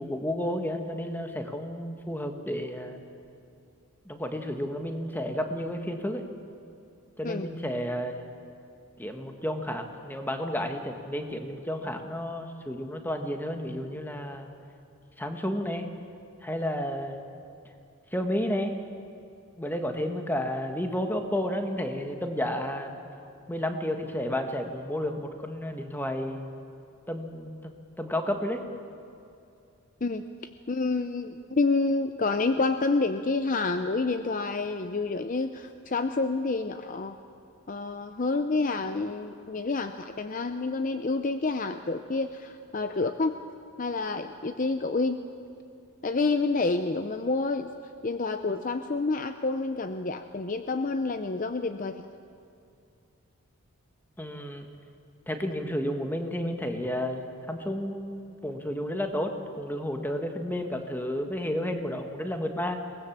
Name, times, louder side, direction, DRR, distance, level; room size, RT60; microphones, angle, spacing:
voice 1, 0.0-3.0 4.0-6.3 7.2-8.3 9.0-14.5 15.2-15.9 16.4-17.3 18.1-18.7 19.6-23.0 23.5-26.5 27.1-28.7 54.2-54.7 55.3-62.8, equal, 10° left, 5 dB, 1.4 m, -31 dB
voice 2, 30.7-37.2 37.7-43.4 43.8-45.2 46.0-47.7 48.0-52.0, left 3 dB, 35° left, 9 dB, 0.6 m, -28 dB
23.0 x 19.0 x 7.3 m, 2.5 s
head